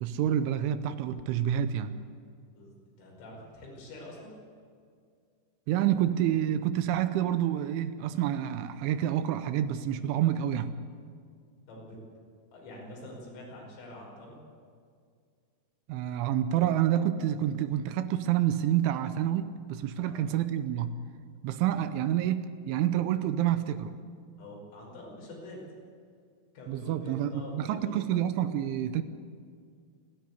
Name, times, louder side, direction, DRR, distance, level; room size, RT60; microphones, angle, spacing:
voice 1, 0.0-2.0 5.7-10.7 15.9-20.9 21.4-23.9 26.7-29.0, right 11 dB, 80° right, 11 dB, 3.1 m, -28 dB
voice 2, 2.5-4.4 11.7-12.0 12.5-14.4 20.0-20.2 24.4-25.6 26.5-28.1, left 1 dB, 85° left, -2 dB, 8.2 m, -45 dB
29.5 x 12.0 x 8.2 m, 2.2 s
omnidirectional pair, 5.7 m